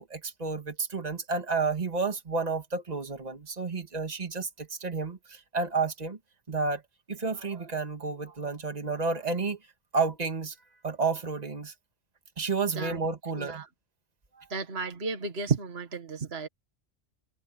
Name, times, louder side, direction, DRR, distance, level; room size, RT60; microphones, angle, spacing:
voice 1, 0.0-6.2 6.5-6.8 7.1-9.6 9.9-10.6 10.8-11.7 12.4-13.6 14.4-14.5, right 4 dB, 30° right, 2.0 m, -31 dB
voice 2, 13.3-13.7 14.5-16.5, right 4 dB, 50° right, 2.0 m, -32 dB
omnidirectional pair, 1.3 m